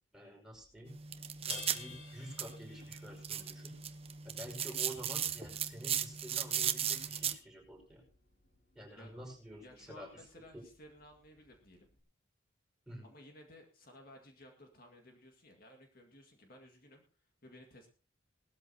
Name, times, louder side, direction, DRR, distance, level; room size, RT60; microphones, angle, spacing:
voice 1, 0.1-0.9 1.5-3.7 4.2-8.0 8.7-10.1 12.9-13.1, equal, 5° right, -1 dB, 5.4 m, -49 dB
sound 1, 0.5-12.0, left 5 dB, 75° left, 3.7 m, -56 dB
sound 2, 0.9-7.3, right 9 dB, 30° right, 0.9 m, -37 dB
voice 2, 9.6-11.9 13.0-17.9, left 1 dB, 50° left, 2 dB, 2.0 m, -57 dB
19.0 x 13.0 x 2.9 m, 0.37 s
head